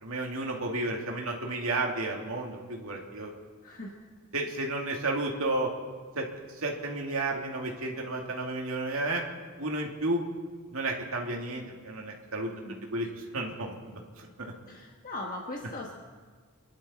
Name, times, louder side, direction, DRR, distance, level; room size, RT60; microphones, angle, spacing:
voice 1, 0.0-3.3 4.3-5.7 6.1-6.3 6.6-9.2 9.6-10.2 10.7-12.5 12.9-13.1 13.3-14.5, right 2 dB, 70° right, 0 dB, 2.4 m, -32 dB
voice 2, 3.6-3.9 12.4-12.9 14.7-15.9, left 2 dB, 40° left, 0 dB, 1.3 m, -39 dB
27.5 x 11.5 x 4.3 m, 1.5 s
head